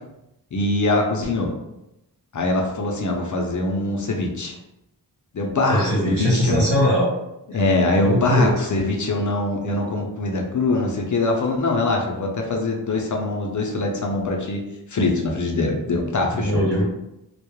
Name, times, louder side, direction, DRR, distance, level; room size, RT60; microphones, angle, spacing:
voice 1, 0.5-1.5 2.3-4.6 5.3-6.7 7.5-16.6, left 2 dB, 45° left, 1 dB, 0.4 m, -23 dB
voice 2, 5.7-7.1 8.0-8.5 16.3-16.8, equal, 85° right, -7 dB, 1.3 m, -20 dB
2.2 x 2.1 x 2.9 m, 0.89 s
wide cardioid pair, 95°, 42 cm